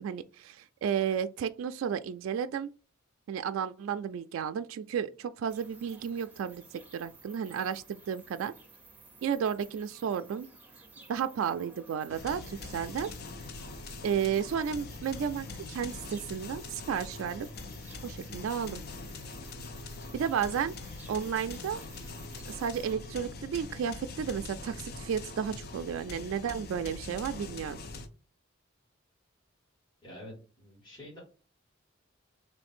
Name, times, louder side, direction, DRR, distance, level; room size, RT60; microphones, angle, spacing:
voice 1, 0.0-2.7 3.3-8.5 9.2-10.5 11.1-13.1 14.0-17.5 18.0-18.8 20.1-21.8 22.5-27.8, right 7 dB, 75° right, 0.3 m, -33 dB
sound 1, 5.5-22.9, right 3 dB, 10° right, 0.7 m, -55 dB
sound 2, 12.1-28.1, left 3 dB, 50° left, 0.6 m, -43 dB
voice 2, 30.0-31.2, left 1 dB, 25° left, 2.1 m, -47 dB
3.2 x 3.1 x 4.3 m
head